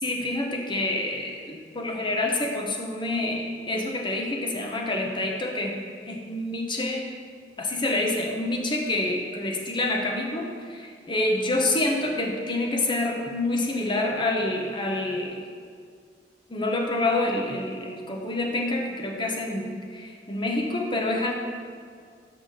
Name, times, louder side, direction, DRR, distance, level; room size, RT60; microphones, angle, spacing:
voice 1, 0.0-5.8 6.0-7.1 7.6-15.4 16.5-21.3, left 2 dB, 25° left, 1 dB, 1.0 m, -27 dB
6.4 x 5.8 x 6.8 m, 2.1 s
head